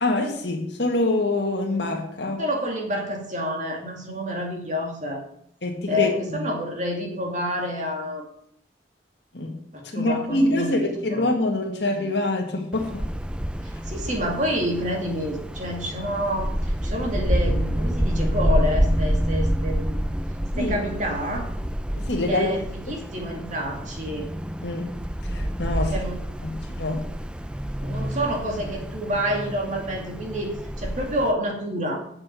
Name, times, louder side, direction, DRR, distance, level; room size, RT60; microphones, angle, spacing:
voice 1, 0.0-2.4 5.6-6.4 9.3-9.5 9.9-13.0 20.6-20.8 21.9-22.5 24.6-24.9 25.3-25.9 26.4-27.0, left 2 dB, 85° left, 1 dB, 1.8 m, -25 dB
voice 2, 2.4-5.2 5.9-8.3 9.7-11.3 13.6-20.1 20.6-21.5 22.3-24.3 25.8-26.6 27.8-32.0, equal, 45° right, 1 dB, 2.4 m, -28 dB
Wind, 12.7-31.3, equal, 5° right, 0.4 m, -28 dB
7.7 x 6.6 x 7.4 m, 0.65 s
head